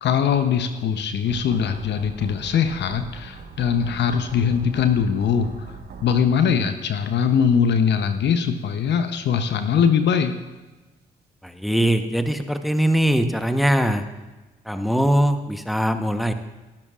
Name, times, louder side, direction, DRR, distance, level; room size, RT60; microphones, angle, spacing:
voice 1, 0.0-5.5 6.0-10.4, left 7 dB, 60° left, 9 dB, 0.9 m, -21 dB
sound 1, 1.3-7.3 7.6-7.7, right 4 dB, 55° right, 1.4 m, -41 dB
voice 2, 11.4-14.0 14.6-16.3, equal, ahead, 8 dB, 1.1 m, -21 dB
17.0 x 13.5 x 2.5 m, 1.2 s
hypercardioid pair, 45°, 20 cm